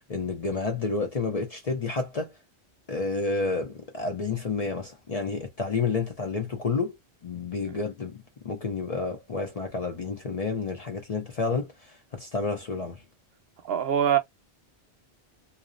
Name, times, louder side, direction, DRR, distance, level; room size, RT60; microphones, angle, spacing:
voice 1, 0.1-2.3 2.9-6.9 7.2-13.0, left 4 dB, 45° left, 0.5 m, -30 dB
voice 2, 13.7-14.2, right 9 dB, 65° right, 0.7 m, -23 dB
2.5 x 2.0 x 2.4 m
omnidirectional pair, 1.1 m